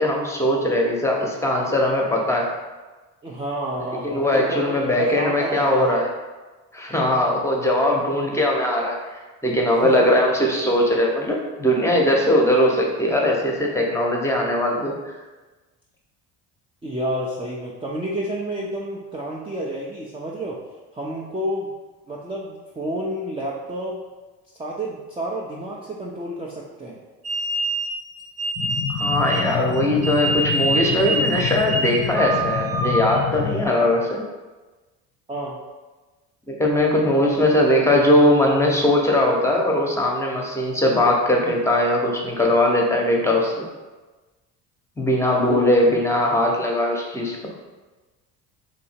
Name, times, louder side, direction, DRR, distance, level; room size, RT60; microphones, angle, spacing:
voice 1, 0.0-2.5 4.0-6.1 6.7-9.0 9.4-14.9 28.9-34.2 36.5-43.7 45.0-47.4, left 1 dB, 5° left, -1 dB, 0.8 m, -20 dB
voice 2, 3.2-6.0 9.8-9.9 16.8-20.6 20.9-21.7 22.1-24.0 24.6-27.0 35.3-35.6 45.3-45.6, right 1 dB, 15° right, -4 dB, 0.5 m, -29 dB
sound 1, 27.2-33.2, right 2 dB, 40° right, 0.8 m, -26 dB
sound 2, 28.6-33.7, left 10 dB, 55° left, 0.5 m, -28 dB
2.8 x 2.6 x 4.3 m, 1.2 s
supercardioid pair, 75°, 37 cm